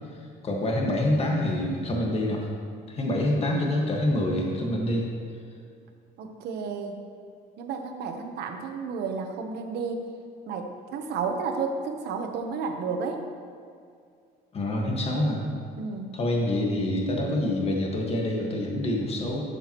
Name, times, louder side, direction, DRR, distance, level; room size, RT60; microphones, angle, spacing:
voice 1, 0.4-2.5 2.9-5.1 14.5-15.5 16.1-19.4, left 1 dB, 35° left, -1 dB, 1.7 m, -26 dB
voice 2, 6.2-7.0 7.6-10.1 10.5-13.3 15.8-16.2, right 5 dB, 75° right, 4 dB, 1.0 m, -32 dB
12.0 x 6.9 x 3.1 m, 2.3 s
cardioid pair, 110°, 17 cm